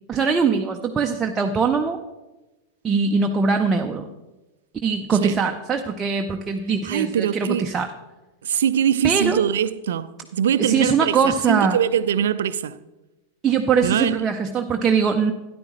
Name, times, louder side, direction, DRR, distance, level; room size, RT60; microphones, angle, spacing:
voice 1, 0.1-2.0 2.8-4.1 4.8-7.9 9.0-9.4 10.6-11.8 13.4-15.3, right 5 dB, 20° right, 0.6 m, -21 dB
voice 2, 6.8-7.7 8.4-12.8 13.8-14.2, right 9 dB, 65° right, 0.4 m, -22 dB
13.0 x 10.0 x 3.1 m
figure-of-eight pair, 90°, 0 cm